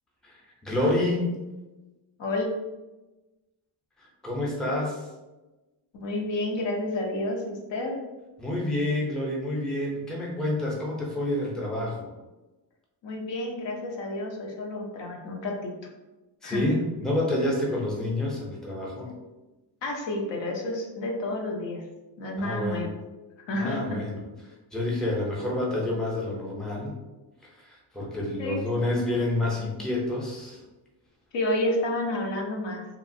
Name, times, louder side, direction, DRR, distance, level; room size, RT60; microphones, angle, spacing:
voice 1, 0.2-1.4 4.0-5.1 8.4-12.1 16.4-19.1 22.4-22.9 23.6-24.1 24.4-26.9 27.5-30.6, left 1 dB, ahead, -3 dB, 0.5 m, -28 dB
voice 2, 5.9-8.0 13.0-15.7 16.4-16.7 19.8-21.8 22.2-22.9 23.5-24.0 28.4-29.0 31.3-32.9, left 1 dB, 70° left, 1 dB, 0.7 m, -30 dB
2.9 x 2.4 x 2.6 m, 1.1 s
cardioid pair, 120°, 45 cm